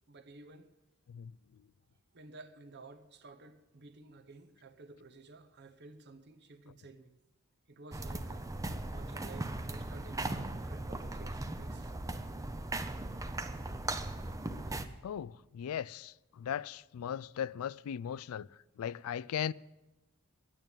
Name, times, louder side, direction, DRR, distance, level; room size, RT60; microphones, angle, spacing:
voice 1, 0.1-0.8 2.1-7.1 7.7-8.5 8.9-11.9, right 3 dB, 50° right, 0.9 m, -53 dB
sound 1, 7.9-14.9, right 2 dB, 15° right, 0.6 m, -38 dB
voice 2, 14.7-19.5, left 9 dB, 85° left, 0.3 m, -38 dB
10.5 x 8.9 x 8.8 m
head